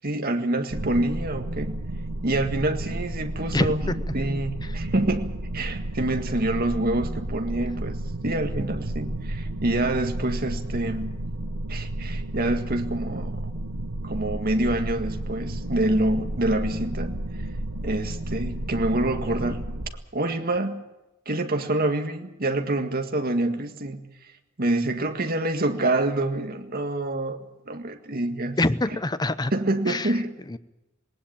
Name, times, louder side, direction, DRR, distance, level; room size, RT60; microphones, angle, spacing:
voice 1, 0.0-1.8 2.2-11.2 11.7-13.5 14.0-17.2 17.8-19.8 20.1-20.9 21.3-24.0 24.6-27.4 27.7-28.6 29.5-30.3, right 2 dB, 45° right, 6 dB, 1.8 m, -26 dB
sound 1, 0.7-19.9, right 1 dB, 85° right, 1.2 m, -32 dB
voice 2, 3.5-4.0 19.2-19.5 28.6-29.5 29.9-30.1 30.5-30.6, left 2 dB, 20° left, 13 dB, 0.7 m, -25 dB
19.5 x 19.0 x 8.8 m, 0.98 s
head